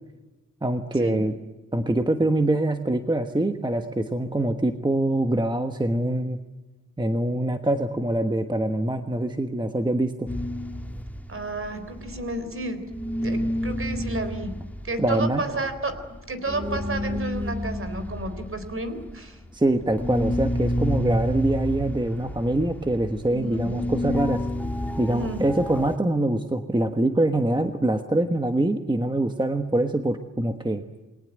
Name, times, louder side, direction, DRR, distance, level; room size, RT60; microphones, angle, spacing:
voice 1, 0.6-1.3 1.7-6.4 7.0-10.3 15.0-15.4 19.5-24.4 25.0-30.8, right 1 dB, 15° right, 7 dB, 1.3 m, -24 dB
sound 1, 10.3-12.6 12.9-26.0, left 1 dB, 5° left, 1.5 m, -30 dB
voice 2, 11.3-12.9 13.2-14.6 14.8-19.4 23.3-23.7 25.1-25.5, right 2 dB, 40° right, 10 dB, 3.7 m, -31 dB
29.0 x 22.0 x 9.1 m, 1.2 s
wide cardioid pair, 170°, 32 cm